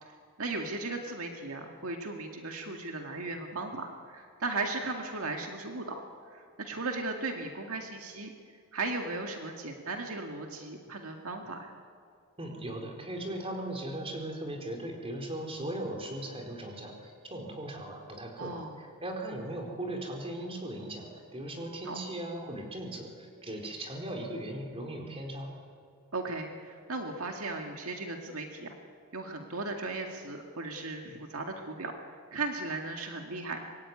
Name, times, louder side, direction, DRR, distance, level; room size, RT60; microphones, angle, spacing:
voice 1, 0.0-6.0 6.3-11.7 18.4-18.8 21.8-22.0 26.1-28.8 29.1-31.9 32.3-33.6, right 3 dB, 70° right, 3 dB, 2.1 m, -37 dB
voice 2, 12.4-25.5, right 1 dB, 25° right, 1 dB, 4.4 m, -38 dB
25.0 x 22.0 x 9.7 m, 2.1 s
head